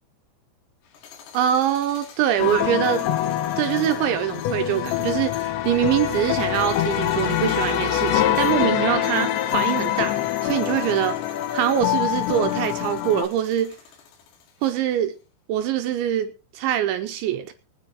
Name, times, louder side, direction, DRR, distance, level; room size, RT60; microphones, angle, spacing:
sound 1, 0.8-15.0, left 7 dB, 90° left, 4.8 m, -44 dB
voice 1, 1.3-3.1 3.6-11.2 11.5-13.7 14.6-15.2 15.5-17.5, right 11 dB, 75° right, 7 dB, 2.9 m, -24 dB
sound 2, 2.4-13.3, left 12 dB, 75° left, 3.2 m, -24 dB
23.5 x 9.8 x 3.1 m, 0.32 s
omnidirectional pair, 5.8 m